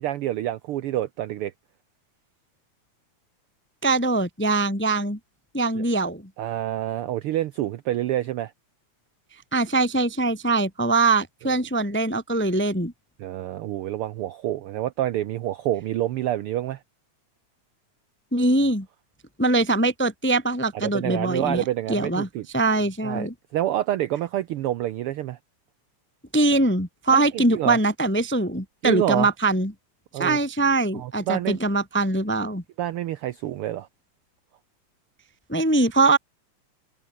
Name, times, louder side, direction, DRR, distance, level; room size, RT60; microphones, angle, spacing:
voice 1, 0.0-1.5 5.8-5.9 6.4-8.5 13.2-16.8 20.8-22.5 23.0-25.4 27.1-27.8 28.8-29.3 30.1-30.4 30.9-31.6 32.8-33.9, right 13 dB, 80° right, 1.2 m, -27 dB
voice 2, 3.8-5.2 5.5-6.2 9.5-12.9 18.3-18.9 19.4-22.3 22.5-23.3 26.3-29.7 30.2-32.6 35.5-36.2, right 2 dB, 10° left, 0.7 m, -22 dB
omnidirectional pair, 3.4 m